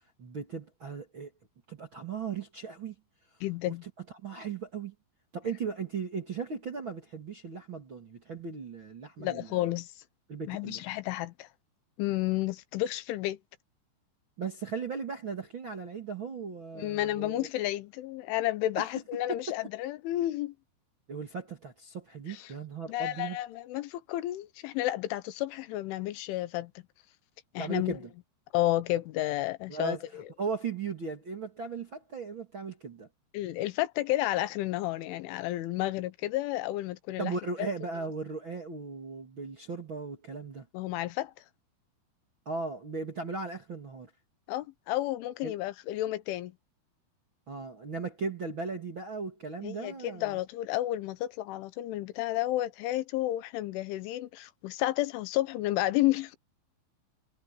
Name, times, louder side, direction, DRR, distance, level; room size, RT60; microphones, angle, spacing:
voice 1, 0.2-1.3 1.7-2.9 3.8-3.9 4.2-4.9 5.3-9.6 10.3-10.8 14.4-17.5 18.8-18.9 19.3-19.4 21.1-23.4 27.6-28.0 29.7-30.0 30.4-33.1 37.2-40.6 42.4-44.1 45.4-45.6 47.5-50.4, right 4 dB, 45° right, 1.7 m, -37 dB
voice 2, 3.4-3.8 9.2-10.0 10.5-11.5 12.0-13.4 16.8-20.5 22.3-22.5 22.9-26.7 27.5-28.0 28.5-30.2 33.3-37.3 37.6-37.7 40.7-41.3 44.5-46.5 49.6-56.4, left 15 dB, 80° left, 3.4 m, -31 dB
omnidirectional pair, 5.6 m